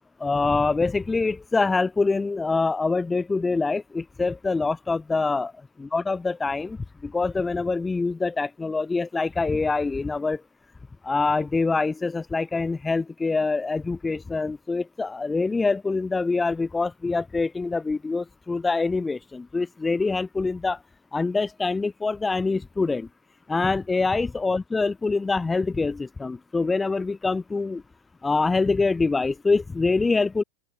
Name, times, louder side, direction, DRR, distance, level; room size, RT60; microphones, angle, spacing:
voice 1, 0.2-5.5 5.8-6.8 7.0-10.4 11.0-20.8 21.1-23.1 23.5-27.8 28.2-30.4, left 3 dB, 10° left, 5.0 m, -25 dB
open air
figure-of-eight pair, 90°, 0 cm